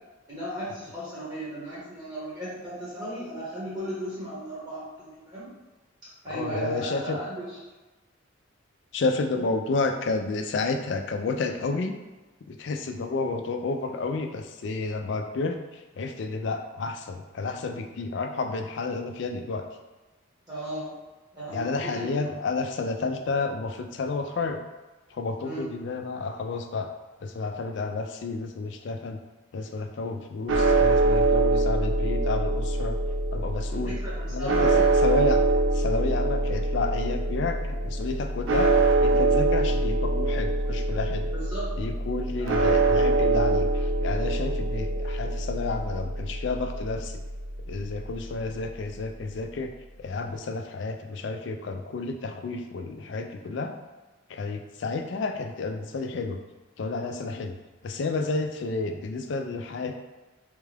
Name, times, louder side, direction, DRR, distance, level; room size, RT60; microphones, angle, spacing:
voice 1, 0.3-5.5 6.2-7.5 9.3-9.5 20.5-20.9 21.3-22.0 25.4-25.6 33.7-34.8 41.3-41.7 42.4-42.6, right 1 dB, 20° right, -10 dB, 1.1 m, -36 dB
voice 2, 6.3-7.2 8.9-11.9 12.5-19.7 21.5-24.6 25.1-26.9 27.2-29.2 29.5-33.0 33.3-34.0 34.3-35.4 35.7-41.3 41.8-47.2 47.7-49.7 50.0-53.8 54.3-56.4 56.8-57.5 57.8-59.9, left 3 dB, 60° left, 5 dB, 0.4 m, -31 dB
sound 1, 30.5-48.7, right 2 dB, 70° right, 0.4 m, -24 dB
3.6 x 2.3 x 3.3 m, 1.2 s
head